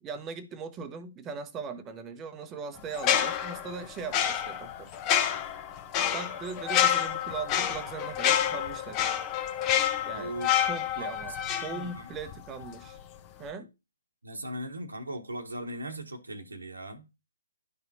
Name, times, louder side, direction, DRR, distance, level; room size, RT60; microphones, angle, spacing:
voice 1, 0.0-4.9 6.1-9.1 10.1-10.4 10.7-13.0 13.4-13.7, right 5 dB, 20° right, 0.8 m, -39 dB
sound 1, 2.9-12.3 12.6-12.8, left 10 dB, 25° left, 0.8 m, -28 dB
voice 2, 10.1-10.5 11.0-12.1 14.2-17.0, right 1 dB, 80° right, 1.1 m, -39 dB
12.0 x 4.2 x 2.7 m
figure-of-eight pair, 135°, 0 cm